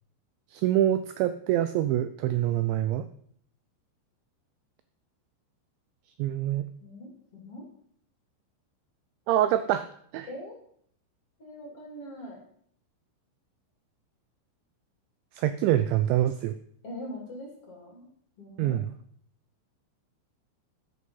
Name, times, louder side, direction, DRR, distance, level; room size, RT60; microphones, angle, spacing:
voice 1, 0.5-3.1 6.2-6.6 9.3-9.9 10.1-10.3 15.3-16.5 18.6-18.9, right 12 dB, 85° right, 11 dB, 2.6 m, -25 dB
voice 2, 6.8-7.7 10.3-10.6 11.4-12.4 16.8-18.0 18.4-18.8, left 1 dB, 35° left, 0 dB, 2.9 m, -42 dB
14.5 x 9.9 x 5.6 m, 0.65 s
omnidirectional pair, 5.8 m